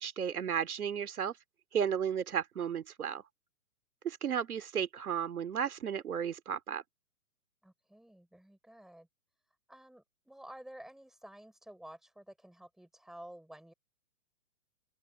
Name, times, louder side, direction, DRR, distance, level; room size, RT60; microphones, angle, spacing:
voice 1, 0.0-1.3 1.7-3.2 4.0-6.8, right 8 dB, 85° right, 2.6 m, -34 dB
voice 2, 7.6-9.1 9.7-13.7, right 1 dB, ahead, 4.6 m, -52 dB
open air
hypercardioid pair, 165°, 43 cm